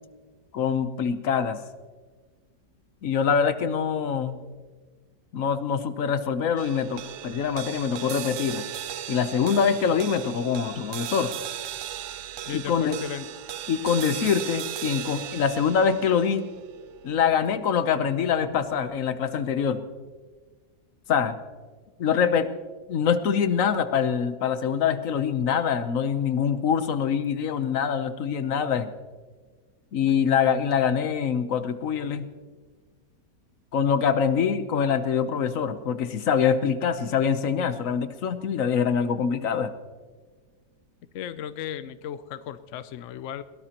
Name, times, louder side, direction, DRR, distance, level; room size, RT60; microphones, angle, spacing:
voice 1, 0.5-1.6 3.0-4.4 5.3-8.6 9.1-11.3 12.5-13.0 13.7-16.5 17.0-19.8 21.1-21.4 22.0-22.5 22.9-28.9 29.9-32.3 33.7-39.7, left 7 dB, 55° left, 11 dB, 1.1 m, -24 dB
sound 1, 6.6-19.1, right 11 dB, 75° right, 0.7 m, -37 dB
voice 2, 12.5-13.3 41.1-43.4, left 9 dB, 75° left, 13 dB, 0.7 m, -35 dB
22.0 x 18.0 x 2.9 m, 1.4 s
omnidirectional pair, 1.9 m